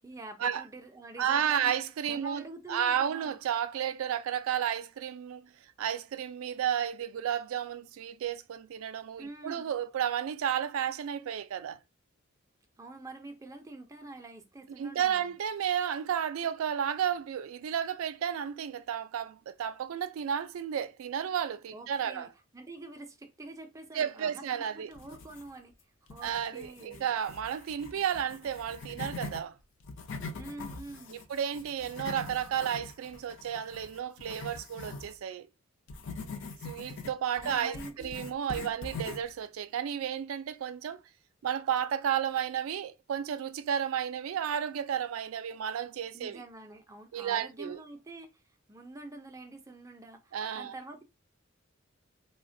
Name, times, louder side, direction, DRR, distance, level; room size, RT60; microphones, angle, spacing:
voice 1, 0.0-1.7 2.0-3.4 9.2-9.7 12.8-15.3 21.7-25.7 26.1-27.1 30.4-31.2 37.4-38.1 46.1-48.4 48.7-51.0, right 2 dB, 15° right, 0.4 m, -46 dB
voice 2, 1.2-5.5 5.8-11.8 14.8-22.3 23.9-24.9 26.2-29.5 31.1-35.5 36.6-37.8 38.0-41.0 41.4-46.4 47.1-47.8 50.3-50.7, right 9 dB, 90° right, 0.3 m, -32 dB
sound 1, 24.9-25.7 26.1-29.4 29.8-35.2 35.9-39.4, left 3 dB, 60° left, 0.5 m, -43 dB
3.0 x 2.1 x 2.5 m
head